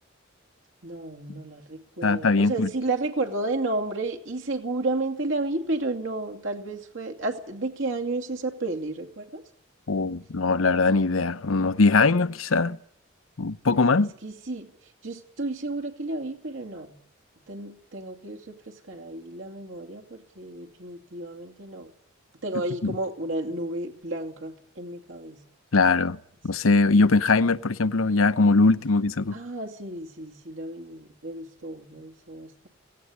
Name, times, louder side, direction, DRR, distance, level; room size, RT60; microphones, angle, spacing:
voice 1, 0.8-9.4 14.2-17.0 17.5-21.9 22.4-25.4 29.3-32.7, right 2 dB, 70° right, 2.5 m, -32 dB
voice 2, 2.0-2.7 9.9-12.8 13.4-14.1 22.8-22.9 25.7-26.2 26.4-29.3, left 3 dB, 90° left, 0.8 m, -21 dB
18.0 x 17.0 x 8.6 m
head